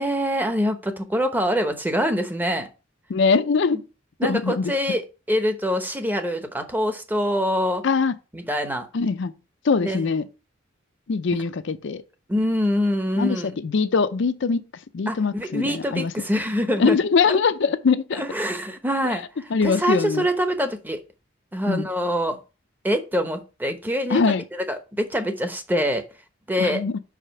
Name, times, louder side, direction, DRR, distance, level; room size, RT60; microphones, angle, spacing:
voice 1, 0.0-2.7 3.7-3.8 4.2-5.0 5.3-7.8 8.3-8.9 9.8-10.0 12.3-13.5 15.1-17.0 18.1-19.2 19.6-21.0 21.5-22.4 22.8-24.2 24.7-26.0 26.5-26.8, equal, 10° right, 0.8 m, -24 dB
voice 2, 3.1-3.8 4.2-4.7 7.8-8.1 8.9-9.3 9.6-10.3 11.1-12.0 13.2-14.6 14.9-16.1 16.8-18.2 19.1-19.2 19.5-20.3 21.7-21.9 24.1-24.4 26.6-26.9, left 5 dB, 65° left, 0.5 m, -22 dB
4.9 x 4.9 x 5.6 m
head